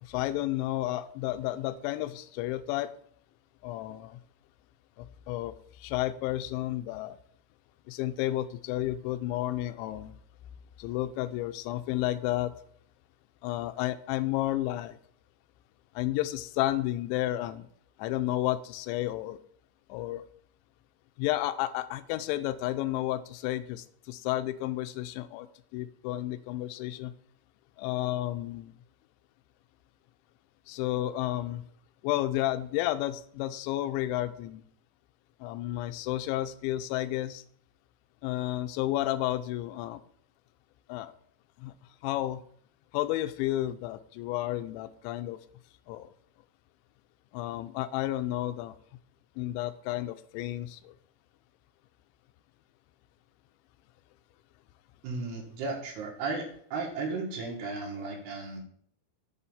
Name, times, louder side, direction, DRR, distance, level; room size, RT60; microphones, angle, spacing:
voice 1, 0.0-2.9 3.6-4.2 5.0-5.5 5.8-7.2 7.9-10.1 10.8-12.5 13.4-15.0 16.0-17.7 18.0-19.4 19.9-20.2 21.2-25.5 25.7-27.1 27.8-28.7 30.7-31.6 32.0-34.6 35.4-37.4 38.2-40.0 40.9-41.1 41.6-41.7 42.0-42.4 42.9-45.4 45.9-46.1 47.3-48.7 49.4-50.9, left 15 dB, 85° left, 10 dB, 2.8 m, -31 dB
voice 2, 55.0-56.5 56.7-58.6, right 3 dB, 65° right, -1 dB, 3.6 m, -34 dB
7.9 x 4.3 x 7.1 m, 0.62 s
omnidirectional pair, 5.3 m